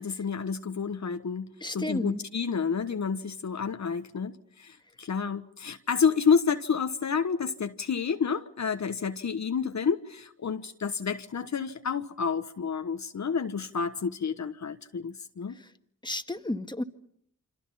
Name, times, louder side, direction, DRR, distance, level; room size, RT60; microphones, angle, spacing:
voice 1, 0.0-15.6, left 6 dB, 55° left, 1.2 m, -29 dB
voice 2, 1.6-2.2 15.6-15.7 16.0-16.8, left 1 dB, 15° left, 1.9 m, -32 dB
28.5 x 25.5 x 5.7 m
cardioid pair, 45°, 33 cm